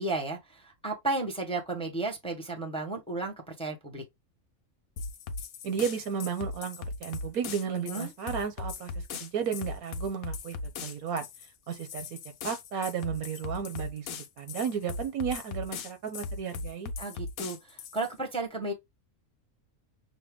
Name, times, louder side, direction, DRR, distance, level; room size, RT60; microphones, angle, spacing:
voice 1, 0.0-4.0 7.7-8.1 17.0-18.7, right 2 dB, 5° left, 0.9 m, -33 dB
sound 1, 5.0-18.1, left 4 dB, 75° left, 1.1 m, -39 dB
voice 2, 5.6-10.6 10.8-11.3 11.7-12.2 12.4-16.9, right 7 dB, 80° right, 1.3 m, -33 dB
6.0 x 2.1 x 3.5 m
omnidirectional pair, 1.5 m